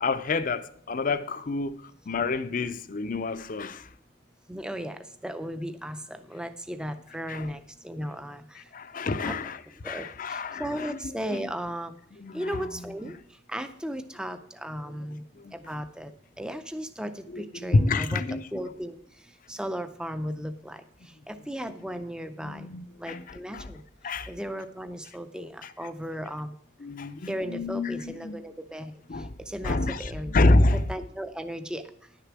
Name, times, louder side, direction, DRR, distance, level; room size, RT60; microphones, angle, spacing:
voice 1, 0.0-3.9 7.3-7.5 8.7-9.6 9.8-11.0 12.2-12.4 15.4-15.5 17.3-18.5 22.4-23.7 24.0-24.3 26.8-28.4 29.1-29.3 29.6-30.8, left 2 dB, 45° left, 0.5 m, -27 dB
voice 2, 4.5-8.6 9.2-9.4 9.8-11.9 12.3-13.2 13.5-15.2 15.5-18.2 18.5-19.0 19.5-20.8 21.3-22.7 23.0-23.8 24.3-26.6 27.3-28.9 29.5-30.3 30.7-31.9, equal, 5° right, 0.5 m, -36 dB
10.5 x 6.7 x 6.1 m
head